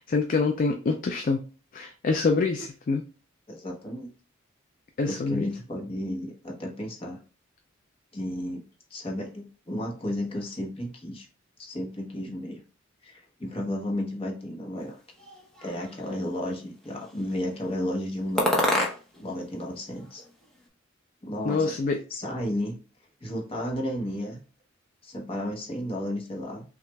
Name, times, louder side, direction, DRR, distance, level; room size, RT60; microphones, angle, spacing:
voice 1, 0.0-1.4 1.7-3.0 5.0-5.5 21.5-22.0, left 4 dB, 45° left, 4 dB, 0.3 m, -25 dB
voice 2, 3.5-4.1 5.0-7.2 8.1-8.6 8.9-11.3 11.6-12.6 13.0-15.0 15.6-18.6 19.2-20.2 21.2-21.8 22.1-22.8 23.2-24.4 25.0-26.6, left 1 dB, 30° left, 0 dB, 0.9 m, -33 dB
sound 1, 15.2-16.2 16.8-17.5 18.4-19.3 19.6-20.7, left 1 dB, 5° left, 0.7 m, -29 dB
5.8 x 2.4 x 2.2 m, 0.36 s
head